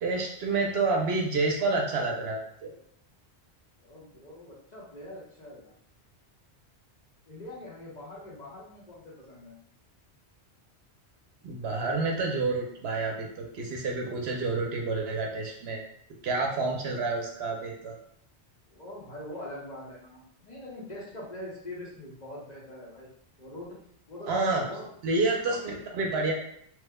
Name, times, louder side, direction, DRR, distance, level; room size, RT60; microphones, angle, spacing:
voice 1, 0.0-2.7 11.4-15.8 16.2-17.9 24.3-24.6 25.0-26.3, right 3 dB, 70° right, 0 dB, 0.8 m, -29 dB
voice 2, 3.8-5.7 7.2-9.6 18.7-23.1 23.4-23.8 24.1-24.9, left 1 dB, 40° left, -5 dB, 0.9 m, -43 dB
3.0 x 2.1 x 3.5 m, 0.68 s
omnidirectional pair, 1.1 m